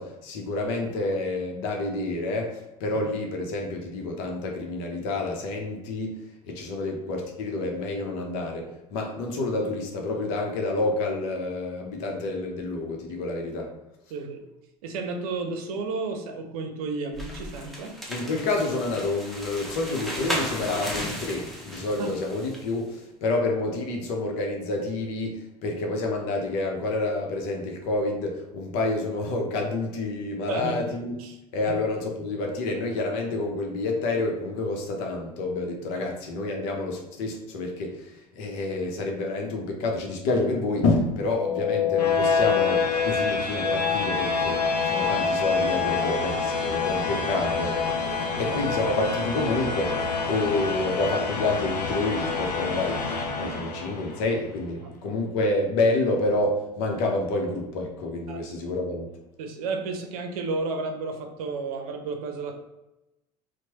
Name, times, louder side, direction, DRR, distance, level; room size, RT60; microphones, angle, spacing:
voice 1, 0.0-13.7 18.1-31.2 31.5-59.1, left 2 dB, 60° left, 2 dB, 0.8 m, -28 dB
voice 2, 14.1-14.4 14.8-17.9 22.0-22.1 30.5-30.9 31.2-31.4 35.9-36.0 46.0-46.1 48.1-48.6 58.3-58.4 59.4-62.5, right 3 dB, 65° right, 4 dB, 0.6 m, -32 dB
sound 1, 17.1-22.7, equal, ahead, 0.8 m, -35 dB
sound 2, 41.3-54.3, left 5 dB, 85° left, 0.5 m, -26 dB
4.4 x 2.2 x 2.9 m, 0.95 s
figure-of-eight pair, 70°, 20 cm